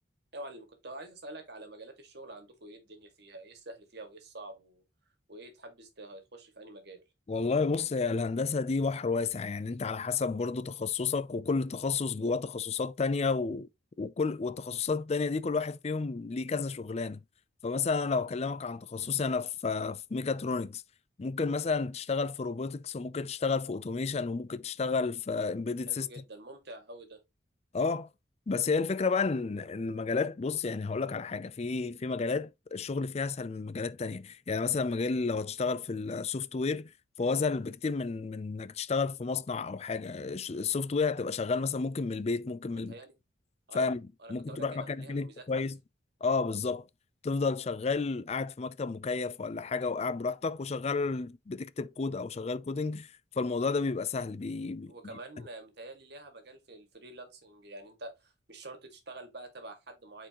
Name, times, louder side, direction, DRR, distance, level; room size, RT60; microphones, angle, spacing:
voice 1, 0.3-4.8 5.3-7.0 25.9-27.2 42.7-43.1 43.7-43.9 44.2-45.6 54.9-60.3, right 2 dB, 60° right, 2.1 m, -47 dB
voice 2, 7.3-13.7 14.0-17.2 17.6-20.8 21.2-26.1 27.7-28.1 28.5-36.9 37.2-42.9 43.7-45.8 46.2-46.9 47.2-54.9, left 4 dB, 35° left, 0.4 m, -31 dB
8.9 x 4.5 x 3.0 m
head